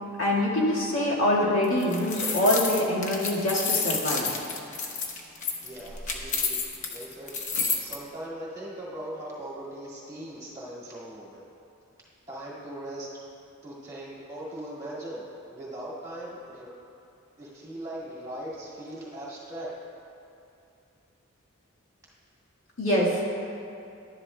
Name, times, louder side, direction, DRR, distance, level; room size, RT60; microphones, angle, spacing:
voice 1, 0.2-4.4 22.8-23.1, left 1 dB, 75° left, -5 dB, 1.7 m, -24 dB
sound 1, 1.6-8.0, left 5 dB, 35° left, 0.7 m, -30 dB
voice 2, 5.6-6.6 6.9-7.4 7.8-11.4 12.3-13.1 13.6-16.7 17.4-19.7, right 1 dB, 15° right, -7 dB, 2.0 m, -39 dB
11.5 x 10.5 x 2.2 m, 2.6 s
head